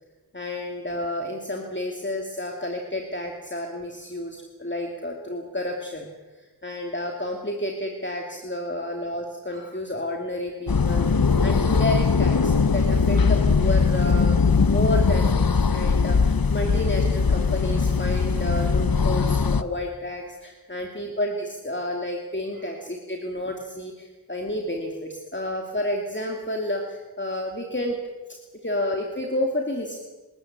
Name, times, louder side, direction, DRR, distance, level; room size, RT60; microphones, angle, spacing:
voice 1, 0.3-6.1 6.4-28.0 28.6-30.0, left 1 dB, 30° left, 2 dB, 2.7 m, -30 dB
sound 1, 10.7-19.6, left 5 dB, 65° left, 0.9 m, -20 dB
29.5 x 13.0 x 8.9 m, 1.3 s
wide cardioid pair, 45°, 38 cm